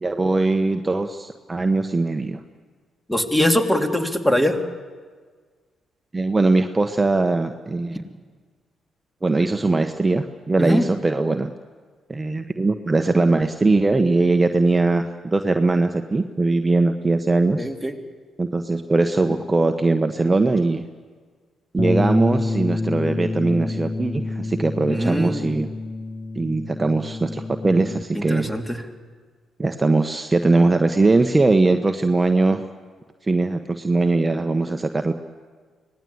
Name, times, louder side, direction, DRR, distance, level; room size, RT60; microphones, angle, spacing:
voice 1, 0.0-2.4 6.1-8.0 9.2-11.5 12.1-17.7 18.4-20.8 21.7-25.7 26.4-28.5 29.6-32.6 33.3-35.1, right 3 dB, 25° right, 7 dB, 1.3 m, -20 dB
voice 2, 3.1-4.6 10.6-10.8 17.6-17.9 24.9-25.5 28.1-28.8, left 1 dB, 5° left, 3 dB, 3.3 m, -22 dB
Bass guitar, 21.8-28.0, left 2 dB, 35° left, 1.0 m, -27 dB
25.0 x 19.0 x 8.1 m, 1.5 s
hypercardioid pair, 45°, 0 cm